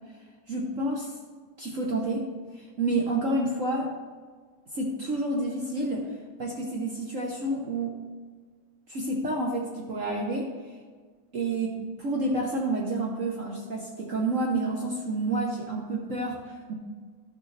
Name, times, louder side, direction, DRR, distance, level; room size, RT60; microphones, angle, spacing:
voice 1, 0.5-1.1 1.6-2.3 2.5-3.9 4.7-6.1 6.4-7.9 8.9-10.5 11.3-16.8, right 2 dB, 50° right, -1 dB, 1.1 m, -29 dB
12.0 x 6.8 x 3.2 m, 1.5 s
omnidirectional pair, 2.1 m